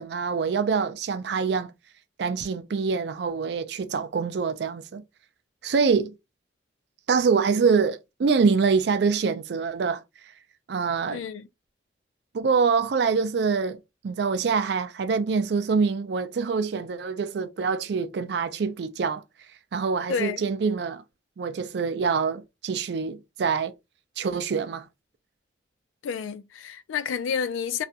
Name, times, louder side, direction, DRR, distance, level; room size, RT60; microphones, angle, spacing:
voice 1, 0.0-1.7 2.2-5.0 5.6-6.1 7.1-10.0 10.7-11.2 12.3-19.2 19.7-21.0 21.4-23.7 24.2-24.9, right 5 dB, 60° right, 0.3 m, -25 dB
voice 2, 11.1-11.5 20.1-20.5 26.0-27.8, left 7 dB, 90° left, 0.3 m, -30 dB
2.4 x 2.1 x 2.7 m
head